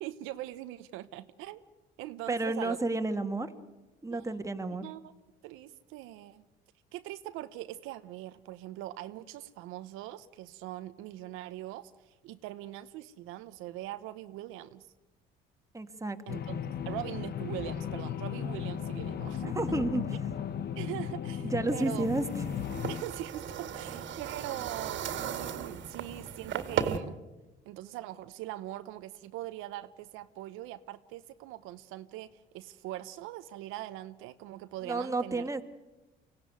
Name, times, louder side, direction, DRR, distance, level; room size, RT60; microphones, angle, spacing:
voice 1, 0.0-1.6 2.0-2.8 4.1-4.3 4.8-5.1 5.4-6.4 6.9-14.9 16.3-16.6 16.9-19.8 20.8-22.1 22.9-27.1 27.6-35.5, right 14 dB, 85° right, 11 dB, 0.9 m, -42 dB
voice 2, 2.3-3.5 4.0-4.8 15.7-16.2 19.4-20.0 21.4-22.3 34.9-35.6, right 2 dB, 15° right, 6 dB, 1.8 m, -31 dB
sound 1, 16.3-23.0, left 8 dB, 50° left, 1.2 m, -35 dB
sound 2, 21.7-27.0, right 8 dB, 65° right, 2.0 m, -36 dB
24.5 x 16.5 x 9.5 m, 1.1 s
supercardioid pair, 80°, 21 cm